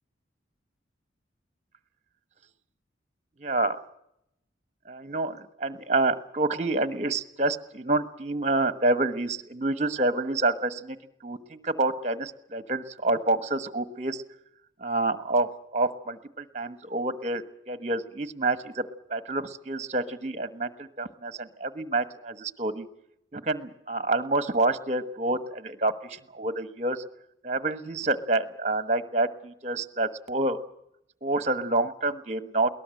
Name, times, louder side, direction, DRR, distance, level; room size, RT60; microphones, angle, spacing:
voice 1, 3.4-3.8 4.8-11.0 11.2-14.2 14.8-18.8 19.1-22.9 23.3-27.0 27.4-30.6 31.2-32.7, right 2 dB, 35° right, 11 dB, 1.3 m, -28 dB
21.5 x 19.0 x 7.8 m, 0.79 s
head